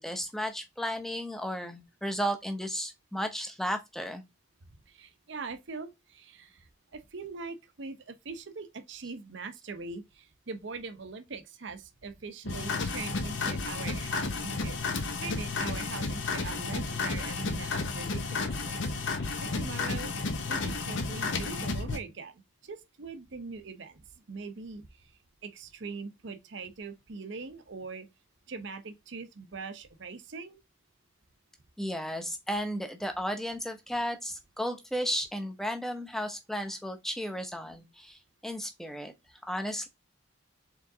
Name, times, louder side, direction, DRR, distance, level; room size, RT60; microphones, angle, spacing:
voice 1, 0.0-4.2 31.8-39.1 39.5-39.9, equal, ahead, 0.6 m, -34 dB
voice 2, 4.9-14.8 15.2-18.8 19.0-20.1 20.5-25.1 25.4-28.1 28.5-30.6, right 4 dB, 65° right, 0.7 m, -42 dB
sound 1, 12.4-22.0, left 3 dB, 65° left, 0.8 m, -32 dB
4.7 x 3.7 x 2.6 m
head